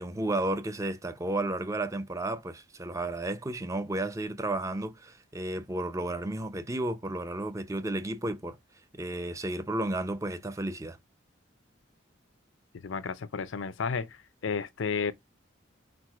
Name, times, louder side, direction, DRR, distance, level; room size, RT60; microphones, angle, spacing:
voice 1, 0.0-8.6 8.9-11.0, right 1 dB, 15° right, 0.5 m, -32 dB
voice 2, 12.8-14.1 14.4-15.1, left 5 dB, 80° left, 0.5 m, -31 dB
4.5 x 3.8 x 2.3 m
head